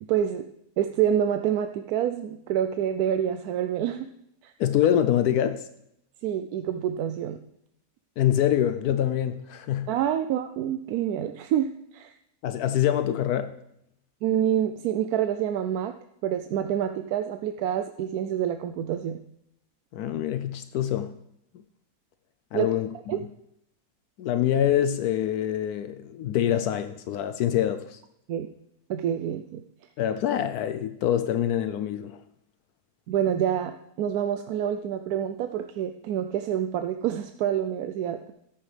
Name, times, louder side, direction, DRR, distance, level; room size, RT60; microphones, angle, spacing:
voice 1, 0.1-0.4 0.8-4.1 4.4-4.5 6.2-7.4 9.9-11.7 11.9-12.1 14.2-15.9 16.2-19.2 22.5-22.7 23.1-23.2 28.3-28.5 28.9-29.6 33.1-38.3, right 10 dB, 75° right, 7 dB, 1.0 m, -27 dB
voice 2, 4.6-5.6 8.2-9.9 12.4-13.5 19.9-21.1 22.5-22.9 24.2-28.0 30.0-32.2, left 10 dB, 80° left, 10 dB, 1.1 m, -25 dB
14.0 x 10.5 x 3.3 m, 0.77 s
omnidirectional pair, 1.6 m